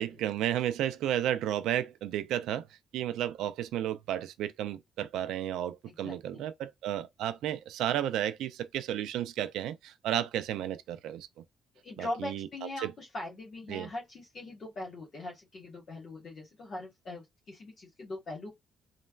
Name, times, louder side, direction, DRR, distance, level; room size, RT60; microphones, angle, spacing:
voice 1, 0.0-2.7 2.9-11.3 12.0-12.5 12.8-12.9 13.7-13.9, right 11 dB, 90° right, 0.3 m, -32 dB
voice 2, 5.8-6.5 11.8-18.5, left 2 dB, 50° left, 1.2 m, -41 dB
3.2 x 2.1 x 2.3 m
cardioid pair, 90°, 0 cm